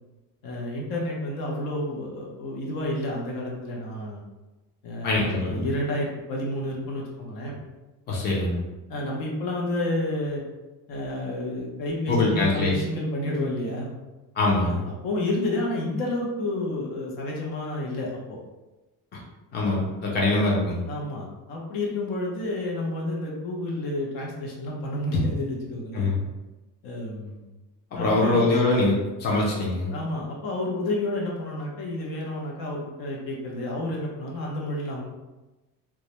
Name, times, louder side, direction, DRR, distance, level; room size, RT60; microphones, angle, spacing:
voice 1, 0.4-4.2 4.8-7.6 8.9-10.4 10.9-13.9 14.6-14.8 15.0-18.4 20.9-26.1 26.8-27.4 28.0-28.5 29.9-35.0, left 1 dB, 75° left, -2 dB, 0.7 m, -30 dB
voice 2, 5.0-5.6 8.1-8.6 12.1-12.7 14.4-14.8 19.5-20.8 25.9-26.2 27.9-29.9, left 2 dB, 30° left, -4 dB, 0.5 m, -23 dB
2.3 x 2.0 x 2.9 m, 1.1 s
cardioid pair, 160°, 34 cm